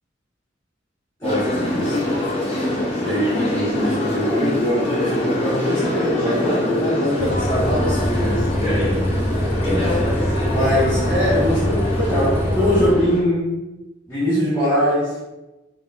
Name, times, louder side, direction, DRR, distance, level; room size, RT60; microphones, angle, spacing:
sound 1, 1.2-13.2, left 1 dB, 30° left, 0.8 m, -24 dB
voice 1, 1.2-2.2 3.0-9.1 9.6-10.0 10.5-13.5 14.1-15.2, left 1 dB, 15° left, -15 dB, 1.5 m, -22 dB
Bus, 7.2-12.9, equal, 10° right, 0.4 m, -23 dB
3.9 x 3.7 x 2.6 m, 1.0 s
head